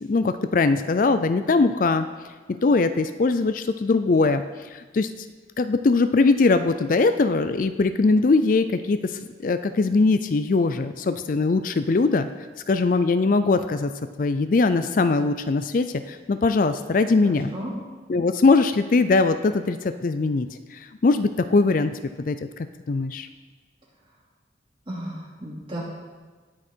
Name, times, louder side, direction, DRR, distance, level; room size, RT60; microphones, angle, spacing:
voice 1, 0.1-2.1 2.5-5.1 5.6-12.3 12.7-13.9 14.2-17.5 18.1-22.4 22.9-23.3, left 3 dB, 50° left, 10 dB, 0.4 m, -21 dB
voice 2, 17.2-17.7 24.9-25.8, right 1 dB, 30° right, -5 dB, 2.8 m, -34 dB
18.5 x 6.3 x 4.4 m, 1.4 s
head